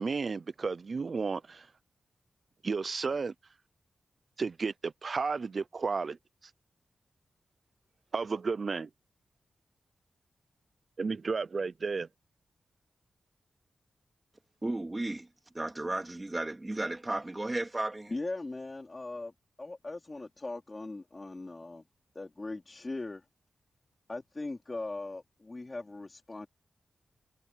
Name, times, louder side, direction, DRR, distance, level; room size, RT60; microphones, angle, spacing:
voice 1, 0.0-1.7 2.6-3.3 4.4-6.2 8.1-8.9 11.0-12.1, right 4 dB, 50° right, 0.5 m, -32 dB
voice 2, 14.6-15.3 15.5-18.1, right 2 dB, 20° right, 2.4 m, -34 dB
voice 3, 18.1-19.3 19.6-21.8 22.2-23.2 24.1-26.5, left 2 dB, 30° left, 3.7 m, -39 dB
wide cardioid pair, 95°, 0 cm